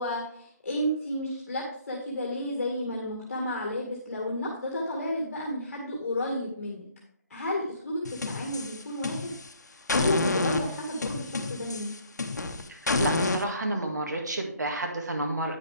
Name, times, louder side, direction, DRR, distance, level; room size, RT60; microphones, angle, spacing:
voice 1, 0.0-6.8 7.3-9.3 9.7-11.9, left 1 dB, 50° left, -2 dB, 2.1 m, -32 dB
sound 1, 8.0-9.5 9.9-13.4, left 3 dB, 75° left, 1.1 m, -29 dB
voice 2, 12.7-15.6, right 2 dB, 80° right, 2 dB, 2.0 m, -31 dB
9.7 x 6.9 x 3.5 m, 0.65 s
hypercardioid pair, 175°, 9 cm